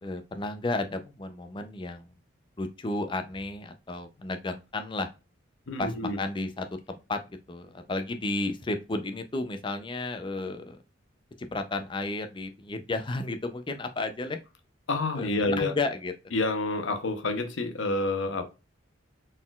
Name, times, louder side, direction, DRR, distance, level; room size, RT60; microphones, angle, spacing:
voice 1, 0.0-2.1 2.6-5.1 5.8-7.2 7.5-10.8 11.5-14.4 15.2-16.1, left 2 dB, 25° left, 0.4 m, -33 dB
voice 2, 5.7-6.2 14.9-15.7 16.3-18.4, left 2 dB, 70° left, 0.7 m, -28 dB
4.1 x 3.7 x 2.3 m
head